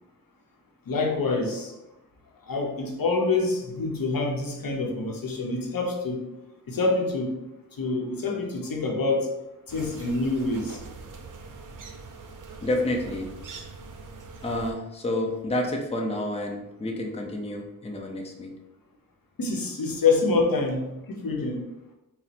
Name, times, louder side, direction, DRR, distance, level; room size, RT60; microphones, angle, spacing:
voice 1, 0.9-1.7 2.5-6.2 6.7-7.3 7.8-9.3 9.7-10.8 19.4-21.6, left 3 dB, 70° left, 1 dB, 0.8 m, -26 dB
sound 1, 9.7-14.7, right 4 dB, 65° right, 0.6 m, -42 dB
voice 2, 12.6-13.3 14.4-18.5, left 1 dB, 20° left, 1 dB, 0.6 m, -29 dB
4.2 x 2.1 x 4.1 m, 0.95 s
wide cardioid pair, 75°, 35 cm